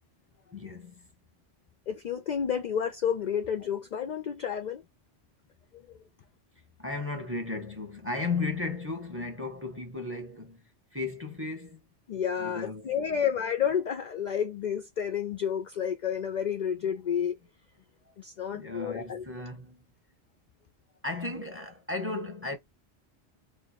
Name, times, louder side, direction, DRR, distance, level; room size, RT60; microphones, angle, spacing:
voice 1, 0.5-1.0 6.8-10.6 10.9-11.8 12.4-12.9 18.1-18.2 18.5-19.8 21.0-22.6, left 3 dB, 10° right, 1.1 m, -35 dB
voice 2, 1.9-4.8 12.1-17.4 18.2-19.2, left 8 dB, 55° left, 0.5 m, -30 dB
3.1 x 2.3 x 4.0 m
omnidirectional pair, 1.2 m